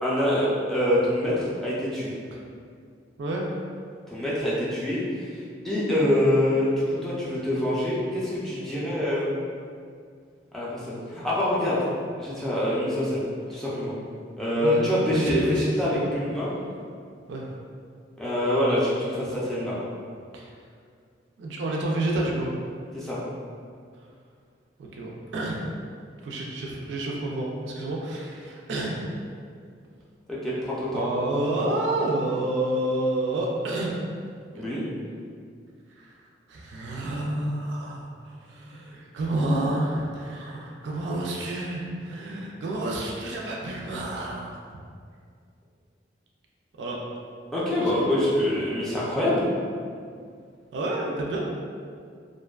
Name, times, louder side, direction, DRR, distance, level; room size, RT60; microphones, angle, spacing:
voice 1, 0.0-2.1 4.1-5.3 5.6-9.3 10.5-11.8 12.2-13.2 13.5-13.9 14.4-16.5 18.2-19.8 22.9-23.2 30.3-31.1 34.5-34.8 47.5-49.5, left 1 dB, ahead, -9 dB, 0.4 m, -25 dB
voice 2, 14.6-16.1 17.3-17.5 20.3-20.5 21.4-22.5 24.8-25.6 26.2-29.0 30.9-33.9 34.6-34.7 36.0-36.1 36.5-44.4 46.8-47.0 47.8-48.1 50.7-51.4, right 1 dB, 75° right, -2 dB, 0.3 m, -29 dB
2.5 x 2.2 x 2.3 m, 2.2 s
head